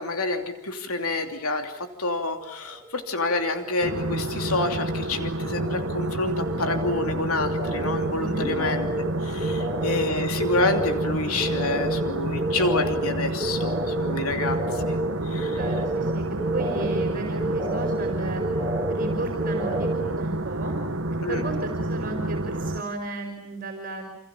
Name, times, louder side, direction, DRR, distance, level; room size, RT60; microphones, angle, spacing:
voice 1, 0.0-8.9 9.2-15.0 15.2-15.6 21.2-21.4, left 2 dB, 80° left, 5 dB, 3.0 m, -28 dB
sound 1, 2.5-3.1 3.4-4.1 4.4-20.2, right 1 dB, 15° right, 3.2 m, -31 dB
sound 2, 3.8-22.8, right 1 dB, 60° right, 1.4 m, -29 dB
voice 2, 8.2-8.5 9.4-9.7 14.1-14.7 15.4-16.3 16.5-18.4 18.9-20.8 21.3-24.0, right 2 dB, 40° right, 2 dB, 5.4 m, -34 dB
29.5 x 27.5 x 7.1 m, 0.76 s
head